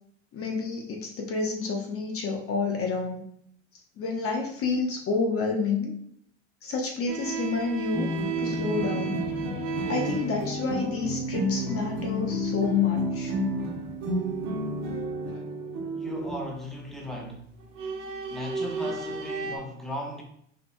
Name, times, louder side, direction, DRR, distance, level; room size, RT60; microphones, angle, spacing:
voice 1, 0.3-3.2 4.0-5.9 6.6-8.1 8.4-9.3 9.9-13.3, left 4 dB, 40° left, 1 dB, 1.0 m, -29 dB
sound 1, 7.1-13.2 13.4-15.0 16.9-17.2 17.5-19.6, right 6 dB, 80° right, 1.0 m, -35 dB
sound 2, 7.9-16.4, left 1 dB, 50° right, 1.3 m, -30 dB
voice 2, 15.9-17.5 18.3-20.2, left 1 dB, ahead, 0 dB, 1.1 m, -37 dB
5.1 x 4.5 x 2.3 m, 0.70 s
hypercardioid pair, 75°, 36 cm